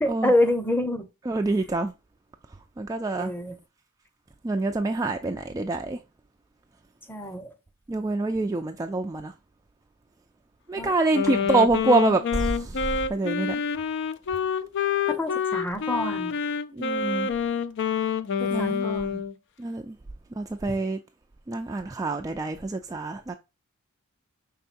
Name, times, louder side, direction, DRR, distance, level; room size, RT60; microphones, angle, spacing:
voice 1, 0.0-1.1 3.2-3.6 7.1-7.5 10.8-10.9 11.3-11.5 15.1-16.3 18.4-19.2 20.7-20.8, left 1 dB, 10° left, 0.8 m, -27 dB
voice 2, 1.3-1.9 2.8-3.3 4.4-6.0 7.9-9.3 10.7-13.6 16.7-17.3 18.5-18.8 19.6-20.0 20.3-21.0 21.5-23.3, right 3 dB, 15° right, 0.3 m, -26 dB
Wind instrument woodwind instrument, 11.1-19.3, left 6 dB, 55° left, 0.4 m, -27 dB
5.7 x 3.5 x 2.5 m
head